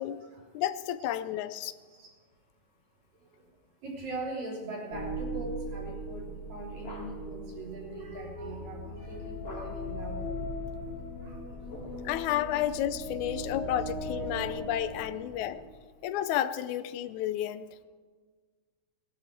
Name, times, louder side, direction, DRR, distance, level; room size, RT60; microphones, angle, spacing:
voice 1, 0.5-1.7 12.0-15.6 16.0-17.7, left 11 dB, 90° left, 13 dB, 2.1 m, -31 dB
voice 2, 3.8-10.3 11.2-11.4 11.8-11.9 12.1-12.3, right 2 dB, 70° right, -4 dB, 4.7 m, -41 dB
sound 1, 4.9-15.7, equal, 50° left, 1.5 m, -39 dB
sound 2, 6.7-7.4 9.4-10.0 11.4-12.2 13.0-15.0, left 1 dB, 25° left, 1.6 m, -50 dB
18.5 x 12.0 x 4.5 m, 1.5 s
omnidirectional pair, 3.3 m